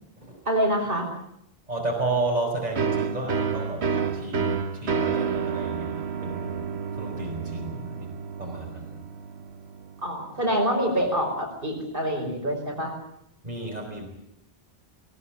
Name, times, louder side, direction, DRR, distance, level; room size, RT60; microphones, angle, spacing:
voice 1, 0.5-1.1 10.0-12.9, equal, 60° right, 0 dB, 5.8 m, -26 dB
voice 2, 1.7-8.1 8.4-9.0 13.4-14.1, right 2 dB, 40° right, -1 dB, 5.2 m, -32 dB
sound 1, 2.8-10.2, right 6 dB, 85° right, 1.4 m, -30 dB
20.0 x 19.5 x 8.7 m, 0.76 s
omnidirectional pair, 1.0 m